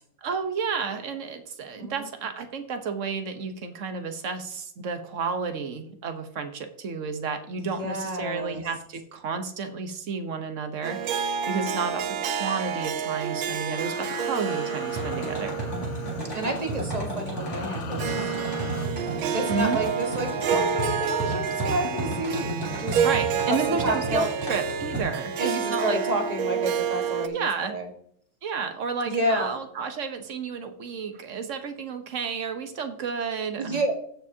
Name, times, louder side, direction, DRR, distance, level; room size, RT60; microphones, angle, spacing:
voice 1, 0.2-15.6 19.5-19.8 23.0-26.0 27.3-27.8 28.4-33.8, right 5 dB, 50° right, 7 dB, 0.9 m, -31 dB
voice 2, 7.6-8.6 16.3-18.3 19.3-23.0 23.5-24.3 25.4-27.9 29.0-29.5 33.6-34.0, right 1 dB, 20° right, 3 dB, 1.2 m, -30 dB
Harp, 10.8-27.3, right 7 dB, 75° right, 1.4 m, -29 dB
sound 1, 12.9-18.9, left 7 dB, 85° left, 0.6 m, -42 dB
sound 2, 14.9-25.0, right 1 dB, 10° left, 3.2 m, -33 dB
15.5 x 6.1 x 2.8 m, 0.64 s
omnidirectional pair, 2.3 m